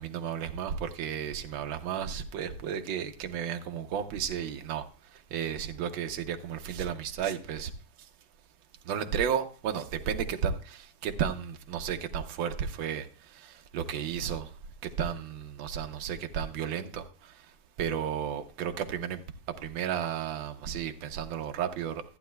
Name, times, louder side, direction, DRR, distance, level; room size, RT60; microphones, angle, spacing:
voice 1, 0.0-4.8 5.1-7.7 8.8-14.5 14.8-17.5 17.8-19.2 19.5-22.0, right 8 dB, 65° right, 1.5 m, -33 dB
14.5 x 9.4 x 2.2 m
omnidirectional pair, 2.4 m